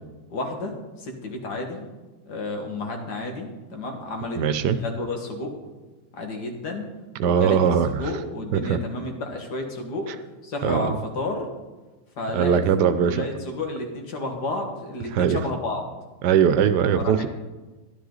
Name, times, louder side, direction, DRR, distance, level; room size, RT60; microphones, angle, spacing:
voice 1, 0.3-1.8 2.3-5.5 6.2-6.9 7.2-7.6 8.0-10.1 10.4-11.5 12.2-15.8 17.0-17.3, left 2 dB, 80° left, 2 dB, 2.3 m, -31 dB
voice 2, 4.4-4.8 7.2-8.1 8.5-8.8 10.1-10.2 10.6-11.0 12.3-13.3 15.1-15.4 16.2-17.3, right 8 dB, 85° right, 12 dB, 1.3 m, -21 dB
13.0 x 11.0 x 4.0 m, 1.2 s
omnidirectional pair, 1.8 m